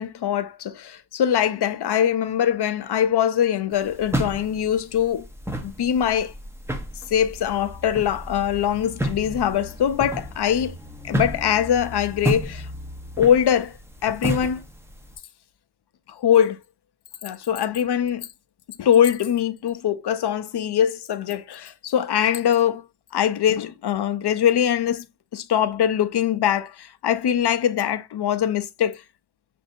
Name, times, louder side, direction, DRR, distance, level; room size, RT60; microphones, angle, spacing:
voice 1, 0.0-5.3 5.6-6.3 7.1-10.8 11.0-12.7 13.2-13.8 14.0-14.6 16.1-16.6 17.2-18.3 18.8-22.8 23.1-25.0 25.3-29.0, left 9 dB, 65° left, 0.6 m, -22 dB
sound 1, 3.7-15.1, equal, 5° right, 0.7 m, -32 dB
6.8 x 2.6 x 2.6 m
wide cardioid pair, 130°, 43 cm